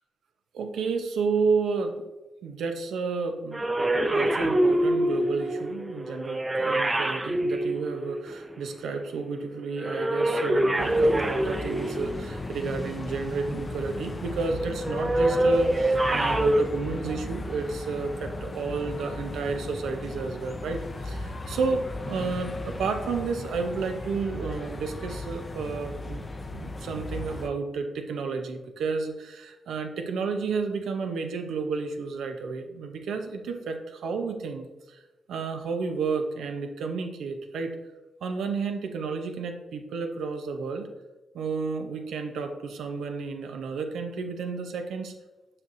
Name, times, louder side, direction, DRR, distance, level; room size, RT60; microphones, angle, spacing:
voice 1, 0.5-2.1 2.4-3.7 4.1-26.2 26.5-35.0 35.3-37.8 38.2-40.9 41.3-45.1, right 4 dB, 85° right, 5 dB, 0.7 m, -31 dB
sound 1, 3.5-8.5 9.8-12.4 14.8-16.6, right 1 dB, 20° right, 0.5 m, -25 dB
sound 2, 10.8-27.5, left 2 dB, 35° left, 0.6 m, -36 dB
6.6 x 5.6 x 2.6 m, 1.1 s
cardioid pair, 60°, 0 cm